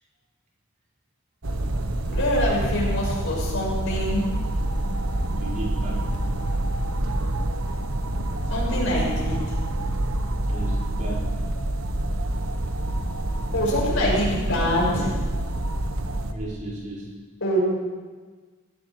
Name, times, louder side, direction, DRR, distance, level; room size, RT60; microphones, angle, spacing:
sound 1, 1.4-16.3, right 1 dB, 90° right, 1.3 m, -27 dB
voice 1, 2.0-4.3 8.5-9.4 13.5-15.1 17.4-17.6, equal, 70° left, -3 dB, 6.6 m, -24 dB
voice 2, 5.3-6.1 10.4-11.4 16.3-17.1, right 2 dB, 40° right, -5 dB, 4.8 m, -35 dB
19.0 x 15.0 x 4.9 m, 1.4 s
head